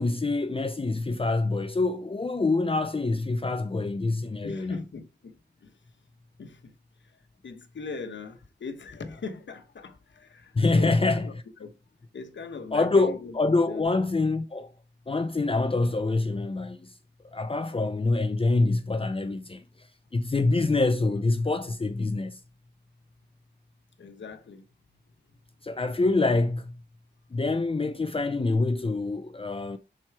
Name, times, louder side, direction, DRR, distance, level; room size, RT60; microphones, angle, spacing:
voice 1, 0.0-4.8 10.6-11.3 12.7-14.7 15.1-16.9 17.3-19.6 20.1-22.4 25.6-26.7 27.3-29.8, left 3 dB, 30° left, 0.5 m, -25 dB
voice 2, 4.4-6.1 6.4-11.7 12.1-13.9 24.0-24.6 24.9-25.0 25.3-25.4, left 4 dB, 85° left, 1.0 m, -41 dB
6.3 x 4.3 x 4.6 m
wide cardioid pair, 100°, 19 cm